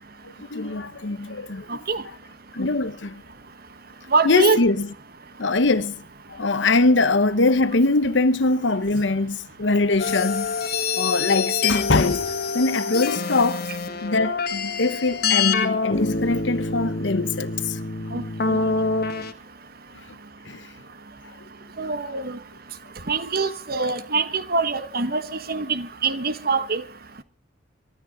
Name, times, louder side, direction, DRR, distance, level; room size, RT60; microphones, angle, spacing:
voice 1, 0.2-1.8 2.5-3.2 4.2-4.9 5.4-10.6 11.0-13.7 14.0-17.8 20.4-20.7 21.2-21.3 22.0-22.1, left 3 dB, 80° left, 1.0 m, -22 dB
voice 2, 1.7-2.0 4.1-4.6 18.1-18.2 18.5-18.6 21.8-22.4 23.1-25.2 25.5-26.8, right 4 dB, 55° right, 1.4 m, -24 dB
sound 1, 10.0-19.3, left 4 dB, 60° left, 1.7 m, -26 dB
23.0 x 13.0 x 4.0 m
head